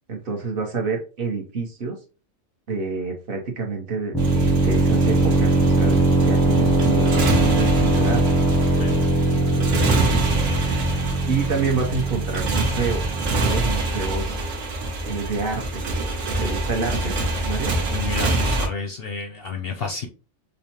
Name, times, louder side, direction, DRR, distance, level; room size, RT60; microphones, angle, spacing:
voice 1, 0.1-2.0 2.7-8.2 8.5-8.9 9.5-11.0 11.3-14.4 15.0-15.9 16.4-17.1 17.4-17.7, right 4 dB, 50° right, 1 dB, 0.9 m, -28 dB
sound 1, 4.1-13.7, right 2 dB, 5° left, 0.4 m, -21 dB
Motorcycle, 4.2-18.7, right 2 dB, 75° right, 1.1 m, -26 dB
voice 2, 17.9-20.1, left 4 dB, 60° left, 4 dB, 0.6 m, -30 dB
5.3 x 2.0 x 2.8 m, 0.34 s
omnidirectional pair, 1.4 m